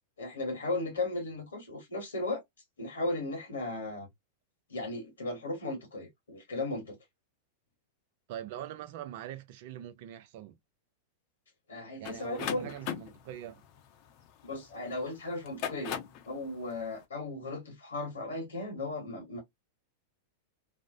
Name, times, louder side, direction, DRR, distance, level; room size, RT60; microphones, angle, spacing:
voice 1, 0.2-2.4 2.8-4.1 4.7-7.0 11.7-12.7 14.4-16.0 16.3-19.4, left 2 dB, 80° left, 1.0 m, -36 dB
voice 2, 8.3-10.6 12.0-13.6, right 11 dB, 55° right, 0.5 m, -42 dB
sound 1, 12.0-14.8 15.4-16.3, left 9 dB, 45° left, 0.6 m, -38 dB
2.5 x 2.1 x 2.5 m
hypercardioid pair, 95°, 0 cm